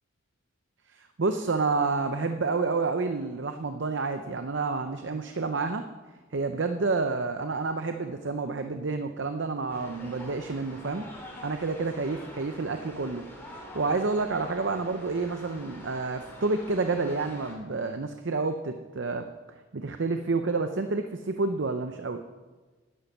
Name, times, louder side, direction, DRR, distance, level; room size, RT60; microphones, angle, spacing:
voice 1, 0.9-5.9 6.3-11.0 11.4-19.3 19.7-22.2, right 3 dB, 55° right, 7 dB, 0.6 m, -29 dB
sound 1, 9.7-17.5, equal, 10° left, 2.6 m, -45 dB
11.0 x 10.5 x 6.0 m, 1.3 s
head